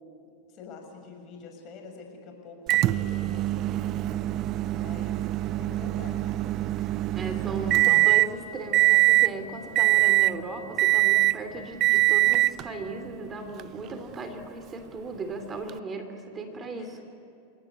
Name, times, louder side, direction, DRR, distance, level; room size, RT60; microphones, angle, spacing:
voice 1, 0.5-5.3 5.6-6.3 6.8-7.8 16.7-16.9, left 4 dB, 45° left, 3 dB, 6.6 m, -46 dB
Microwave oven, 2.7-8.3 8.7-9.3 9.7-10.4 10.8-11.4 11.8-12.6 13.6-13.7 15.7-15.8, right 18 dB, 40° right, 0.6 m, -23 dB
voice 2, 7.1-17.0, right 3 dB, 25° right, 7 dB, 3.0 m, -37 dB
29.5 x 17.5 x 9.7 m, 2.7 s
hypercardioid pair, 100°, 0 cm